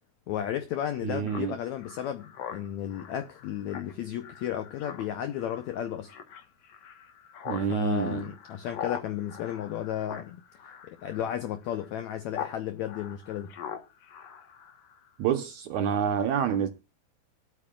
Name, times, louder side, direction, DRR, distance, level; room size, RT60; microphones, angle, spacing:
voice 1, 0.3-6.1 7.7-10.4 10.9-13.5, left 10 dB, 80° left, 1.6 m, -33 dB
voice 2, 1.0-1.5 7.5-8.3 15.2-16.7, right 8 dB, 75° right, 1.8 m, -27 dB
Speech synthesizer, 1.3-12.6 12.9-15.1, left 9 dB, 60° left, 1.8 m, -42 dB
23.5 x 8.7 x 2.3 m
omnidirectional pair, 4.2 m